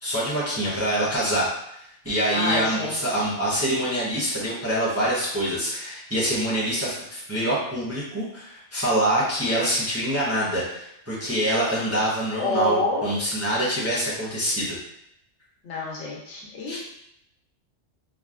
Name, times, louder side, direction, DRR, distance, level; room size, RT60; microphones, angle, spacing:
voice 1, 0.0-14.8 16.7-16.8, equal, 15° right, -8 dB, 0.5 m, -25 dB
voice 2, 2.3-3.2 12.3-13.1 15.6-16.8, left 2 dB, 75° left, -3 dB, 1.0 m, -27 dB
3.2 x 2.1 x 2.4 m, 0.77 s
omnidirectional pair, 1.2 m